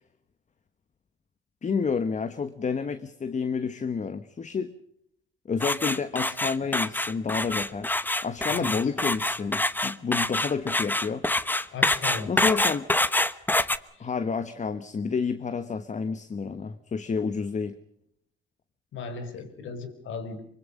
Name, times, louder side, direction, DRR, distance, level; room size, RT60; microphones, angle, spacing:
voice 1, 1.6-4.7 5.5-11.5 12.3-12.9 14.0-17.8, left 5 dB, 35° left, 11 dB, 1.3 m, -30 dB
sound 1, 5.6-13.8, left 1 dB, 10° left, 1.1 m, -26 dB
voice 2, 11.7-12.7 14.0-14.1 18.9-20.4, left 4 dB, 75° left, 11 dB, 4.3 m, -37 dB
24.0 x 24.0 x 5.4 m, 0.72 s
cardioid pair, 90°, 20 cm